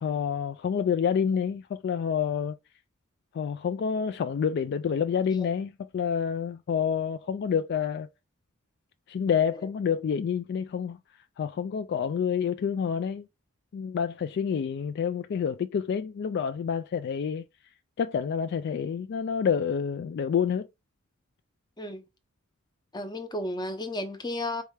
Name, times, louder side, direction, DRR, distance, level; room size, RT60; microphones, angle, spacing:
voice 1, 0.0-2.6 3.3-8.1 9.1-11.0 11.4-13.3 13.7-17.5 18.0-20.7, left 7 dB, 55° left, 0.3 m, -28 dB
voice 2, 22.9-24.6, left 1 dB, 20° left, 0.7 m, -33 dB
4.6 x 3.2 x 3.3 m
head